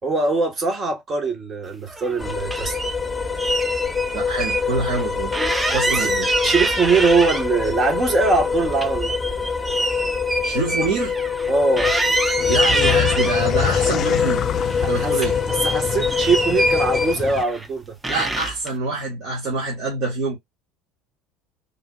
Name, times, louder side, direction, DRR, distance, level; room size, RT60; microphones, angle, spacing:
voice 1, 0.0-2.7 5.9-9.2 11.5-11.9 14.8-15.2 15.6-18.0, right 3 dB, 40° right, 1.7 m, -22 dB
sound 1, 1.9-2.9 3.4-4.6 4.9-5.0 5.3-7.7 8.1-11.5 11.8-13.4 14.0-14.9 15.1-17.7 18.0-18.7, right 2 dB, 15° right, 0.9 m, -26 dB
sound 2, 2.2-17.1, left 6 dB, 10° left, 1.3 m, -24 dB
voice 2, 4.1-5.3 5.7-6.3 10.4-11.1 12.5-14.5 14.9-15.4 18.1-20.4, right 3 dB, 55° right, 1.9 m, -25 dB
sound 3, 12.4-17.4, left 9 dB, 50° left, 0.4 m, -27 dB
3.9 x 2.7 x 2.4 m
hypercardioid pair, 75°, 0 cm